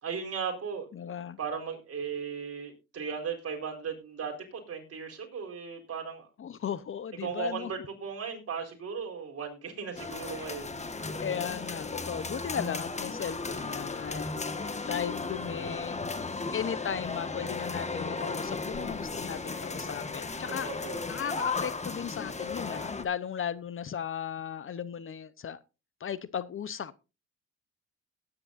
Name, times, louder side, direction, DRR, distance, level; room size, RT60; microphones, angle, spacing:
voice 1, 0.0-0.9 1.4-6.3 7.2-10.8 20.6-21.1, right 6 dB, 50° right, 4.3 m, -37 dB
voice 2, 0.9-1.4 6.4-7.7 11.2-16.0 16.5-25.6 26.0-26.9, left 8 dB, 45° left, 0.8 m, -36 dB
Wind instrument woodwind instrument, 9.9-15.9, left 3 dB, 75° left, 7.7 m, -54 dB
sound 1, 10.0-23.0, left 4 dB, 20° left, 1.5 m, -35 dB
18.0 x 9.8 x 2.6 m
cardioid pair, 90°, 30 cm